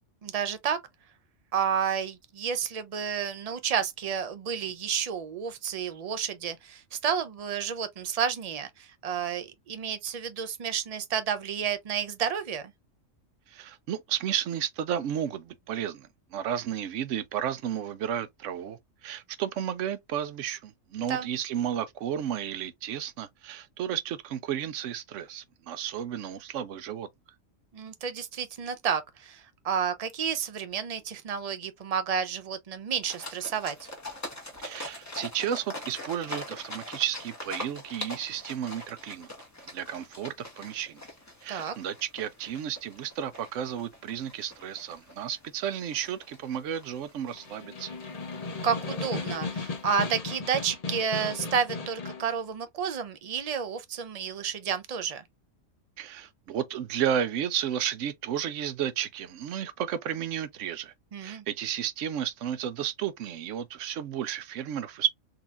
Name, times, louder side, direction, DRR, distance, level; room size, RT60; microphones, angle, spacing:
voice 1, 0.2-0.8 1.5-12.7 21.0-21.3 27.7-33.9 41.5-41.7 48.6-55.2 61.1-61.4, right 7 dB, 50° right, 0.4 m, -31 dB
voice 2, 13.5-27.1 34.6-39.3 39.7-41.0 41.4-47.9 56.0-60.9 61.2-65.1, right 9 dB, 75° right, 0.9 m, -33 dB
sound 1, 33.0-50.2, left 1 dB, 15° left, 1.1 m, -44 dB
Snare drum, 47.3-52.3, left 4 dB, 40° left, 0.6 m, -36 dB
3.9 x 2.8 x 2.4 m
omnidirectional pair, 1.4 m